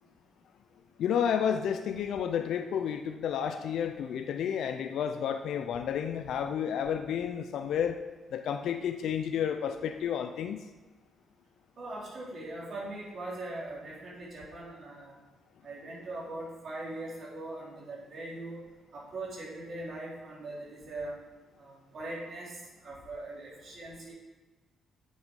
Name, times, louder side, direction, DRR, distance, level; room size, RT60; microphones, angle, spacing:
voice 1, 1.0-8.0 8.3-10.6, left 8 dB, 75° left, 7 dB, 0.5 m, -31 dB
voice 2, 11.8-15.1 15.6-18.6 18.9-21.1 21.6-22.6 22.8-24.1, right 2 dB, 55° right, -4 dB, 3.4 m, -41 dB
8.3 x 6.4 x 5.2 m, 1.2 s
cardioid pair, 90°, 0 cm